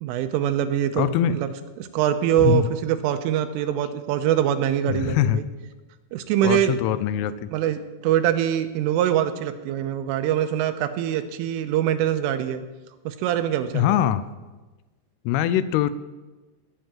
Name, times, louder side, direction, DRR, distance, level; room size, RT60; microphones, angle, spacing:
voice 1, 0.0-1.1 1.3-5.4 6.1-6.8 7.5-12.6 13.1-14.0, right 11 dB, 85° right, 9 dB, 3.3 m, -24 dB
voice 2, 1.0-1.4 2.5-2.7 4.9-5.4 6.4-7.5 13.7-14.3 15.3-15.9, left 10 dB, 85° left, 14 dB, 3.1 m, -22 dB
18.5 x 6.6 x 9.0 m, 1.2 s
omnidirectional pair, 5.8 m